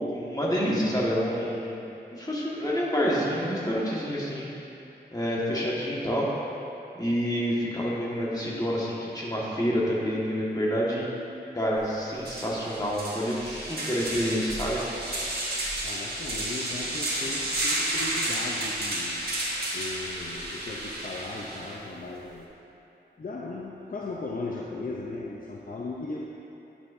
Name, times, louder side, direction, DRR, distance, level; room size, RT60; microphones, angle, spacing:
voice 1, 0.1-1.8 2.1-4.5 5.1-6.3 7.0-11.1 11.5-14.8, equal, 20° left, -6 dB, 1.6 m, -28 dB
sound 1, 11.8-11.9 12.2-21.8, right 1 dB, 60° right, 1.5 m, -32 dB
voice 2, 15.8-22.7 23.2-26.3, left 2 dB, 50° left, -3 dB, 0.6 m, -37 dB
9.2 x 7.0 x 2.7 m, 2.9 s
wide cardioid pair, 65°, 18 cm